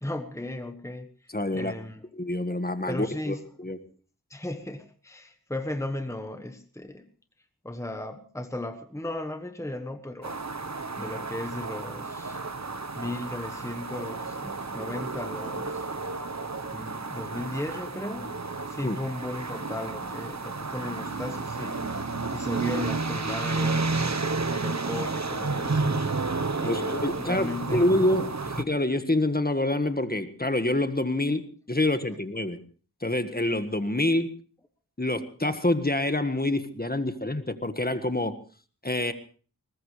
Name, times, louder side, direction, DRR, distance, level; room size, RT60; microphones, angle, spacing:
voice 1, 0.0-2.0 2.9-3.4 4.3-7.1 7.6-10.4 11.0-12.4 12.9-15.9 16.7-18.4 18.7-21.9 22.3-24.2 24.5-26.1 26.6-28.0, left 1 dB, 10° left, 8 dB, 1.3 m, -36 dB
voice 2, 1.3-1.7 2.1-3.8 18.8-19.0 26.6-32.6 33.0-34.3 35.0-38.4 38.8-39.1, left 1 dB, 25° left, 10 dB, 1.6 m, -27 dB
sound 1, 10.2-28.6, right 3 dB, 50° right, 1.2 m, -31 dB
21.5 x 19.5 x 3.3 m, 0.41 s
wide cardioid pair, 50°, 34 cm